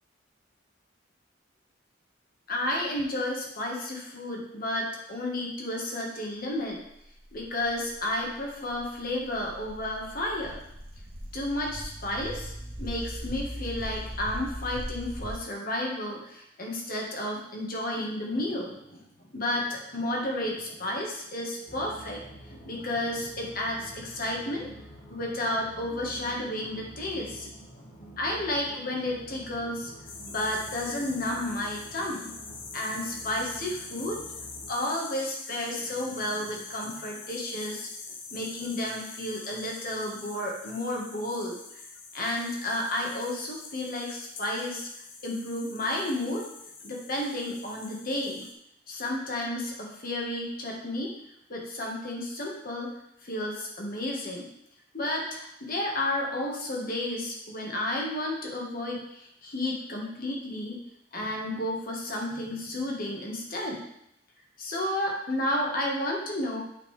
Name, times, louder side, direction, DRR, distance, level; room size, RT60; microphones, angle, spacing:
voice 1, 2.5-6.8 7.3-10.6 11.3-12.5 12.8-19.1 19.3-22.2 22.5-24.7 25.1-27.5 27.8-27.9 28.2-29.9 30.3-34.2 34.7-37.9 38.3-41.8 42.1-44.9 45.2-46.5 46.8-48.4 48.9-51.1 51.5-52.9 53.2-54.5 54.9-60.8 61.1-63.8 64.6-66.6, left 1 dB, 50° left, -1 dB, 1.5 m, -32 dB
sound 1, 6.9-15.4, equal, 30° right, 0.9 m, -40 dB
sound 2, 21.7-34.7, right 1 dB, 85° left, 2.0 m, -48 dB
sound 3, 30.0-48.5, left 4 dB, 65° left, 1.0 m, -44 dB
8.3 x 5.3 x 3.4 m, 0.81 s
head